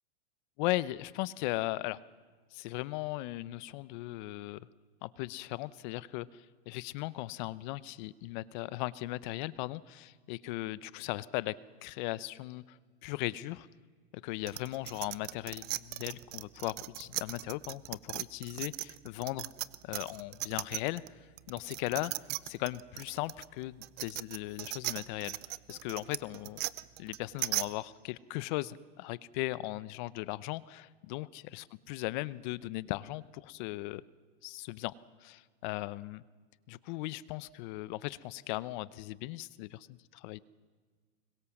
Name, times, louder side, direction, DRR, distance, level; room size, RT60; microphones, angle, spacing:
voice 1, 0.6-2.0 2.5-4.7 5.0-11.6 11.8-13.7 14.1-19.5 19.8-22.1 22.4-26.6 27.0-34.0 34.4-34.9 35.2-36.2 36.7-40.4, left 18 dB, 50° left, 19 dB, 0.9 m, -38 dB
sound 1, 14.5-21.1 21.4-27.7, right 19 dB, 35° right, 0.6 m, -37 dB
25.0 x 22.5 x 7.3 m, 1.5 s
supercardioid pair, 145°, 30 cm